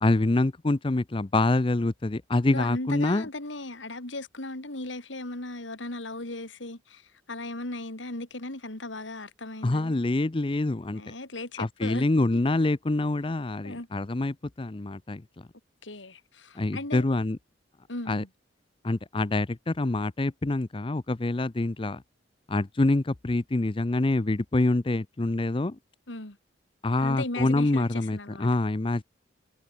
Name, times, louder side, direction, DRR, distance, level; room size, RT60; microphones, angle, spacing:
voice 1, 0.0-3.2 9.6-11.0 11.6-15.2 16.6-17.4 18.1-18.2 18.8-22.0 22.5-25.8 26.8-29.0, left 2 dB, 30° left, 0.6 m, -26 dB
voice 2, 2.5-9.9 10.9-12.1 13.6-13.9 15.8-17.1 17.9-18.3 26.1-26.4 27.0-28.5, left 2 dB, 85° left, 3.5 m, -37 dB
head